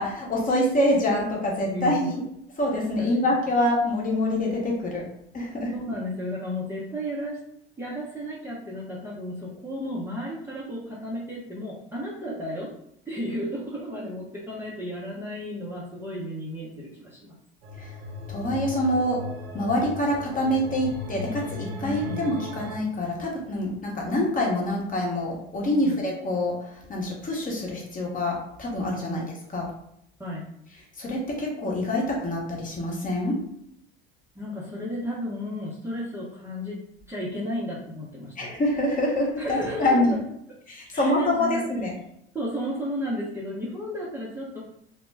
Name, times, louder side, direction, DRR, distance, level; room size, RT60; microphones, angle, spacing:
voice 1, 0.0-2.1 2.6-5.1 5.3-5.7 17.8-17.9 18.3-19.2 19.5-29.7 31.0-33.4 38.4-40.1 40.7-41.9, left 1 dB, 25° left, -2 dB, 1.0 m, -26 dB
voice 2, 1.7-2.1 3.0-3.1 5.7-7.4 7.8-12.7 13.1-17.3 21.8-22.3 25.8-26.0 29.0-29.3 30.2-30.5 34.3-36.8 37.1-38.5 39.4-40.2 40.9-41.6 42.3-44.6, equal, 10° right, -7 dB, 0.7 m, -33 dB
sound 1, 17.6-22.8, left 2 dB, 70° right, 0.6 m, -37 dB
2.1 x 2.1 x 3.3 m, 0.75 s
hypercardioid pair, 70°, 31 cm